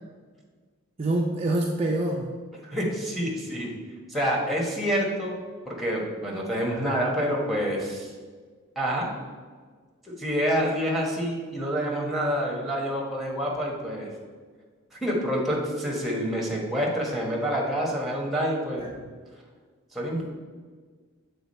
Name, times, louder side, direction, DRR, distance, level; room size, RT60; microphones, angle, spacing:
voice 1, 1.0-2.3 18.8-18.9 20.1-20.2, right 1 dB, 30° right, -1 dB, 0.4 m, -26 dB
voice 2, 2.6-3.7 4.1-5.3 5.7-8.1 8.7-9.1 10.0-14.1 14.9-19.0 19.9-20.2, equal, ahead, -2 dB, 1.1 m, -27 dB
6.9 x 3.9 x 4.2 m, 1.5 s
head